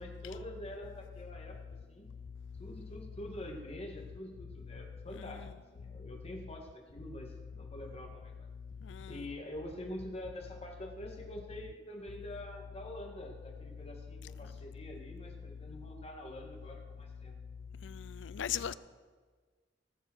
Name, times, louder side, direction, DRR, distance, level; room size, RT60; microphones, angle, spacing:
voice 1, 0.0-1.6 1.9-2.1 2.6-5.5 5.7-8.5 9.1-17.4 18.6-18.7, left 1 dB, 35° left, 2.0 m, -46 dB
voice 2, 8.9-9.2 17.8-18.7, left 9 dB, 75° left, 0.5 m, -38 dB
18.5 x 7.2 x 6.3 m
head